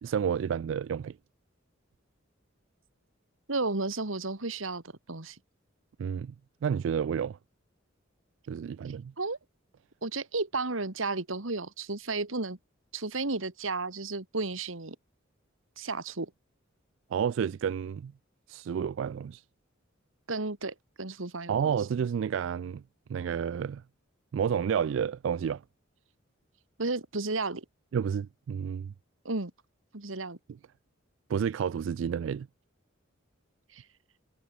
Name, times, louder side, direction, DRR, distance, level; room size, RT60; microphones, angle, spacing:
voice 1, 0.0-1.2 6.0-6.3 6.6-7.4 8.5-9.1 17.1-18.1 18.5-19.4 21.5-22.8 23.1-23.8 24.3-25.6 27.9-28.9 31.3-32.5, right 7 dB, 65° right, 0.3 m, -30 dB
voice 2, 3.5-4.8 5.1-5.4 9.2-9.4 10.0-12.6 12.9-15.0 15.8-16.3 20.3-21.7 26.8-27.6 29.2-29.5 29.9-30.4 33.7-33.8, right 3 dB, 85° right, 2.2 m, -33 dB
head